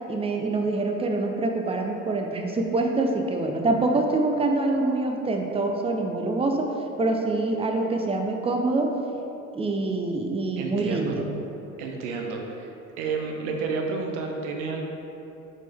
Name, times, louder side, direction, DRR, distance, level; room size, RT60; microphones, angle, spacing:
voice 1, 0.1-6.7 7.0-8.9 9.5-11.2, right 2 dB, 15° right, 3 dB, 0.6 m, -25 dB
voice 2, 10.6-11.2 11.8-12.7 13.0-14.8, right 4 dB, 60° right, 2 dB, 0.9 m, -30 dB
7.2 x 4.3 x 3.5 m, 2.9 s
figure-of-eight pair, 60°, 41 cm